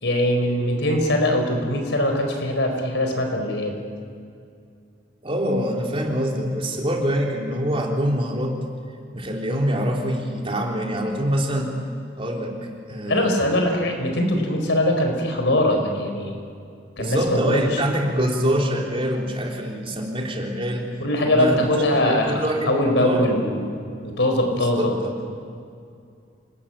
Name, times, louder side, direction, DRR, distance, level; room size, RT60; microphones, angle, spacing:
voice 1, 0.0-3.7 13.1-16.3 17.0-17.6 21.0-23.7 24.0-24.9, left 1 dB, 70° left, 3 dB, 4.6 m, -22 dB
voice 2, 5.2-8.5 9.1-11.7 12.2-12.6 12.9-13.4 17.0-20.9 21.2-21.6 22.0-22.7 23.0-23.3 24.5-25.3, equal, 30° right, 0 dB, 3.6 m, -25 dB
28.0 x 20.0 x 8.9 m, 2.4 s
head